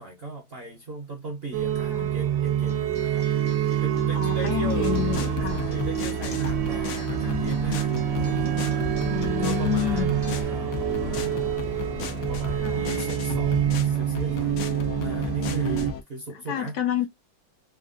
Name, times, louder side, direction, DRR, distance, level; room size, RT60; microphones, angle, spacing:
voice 1, 0.0-3.3 3.8-4.9 5.5-14.6 15.0-16.8, right 3 dB, 55° right, 0.7 m, -37 dB
sound 1, 1.5-15.9, right 9 dB, 80° right, 1.2 m, -26 dB
Acoustic guitar, 2.4-10.4, left 3 dB, 40° left, 0.5 m, -44 dB
voice 2, 4.1-5.6 9.0-10.1 12.6-12.9 15.6-15.8 16.5-17.1, left 11 dB, 70° left, 1.0 m, -29 dB
sound 2, 4.8-16.0, left 7 dB, 90° left, 0.6 m, -34 dB
3.5 x 2.3 x 2.4 m
omnidirectional pair, 1.9 m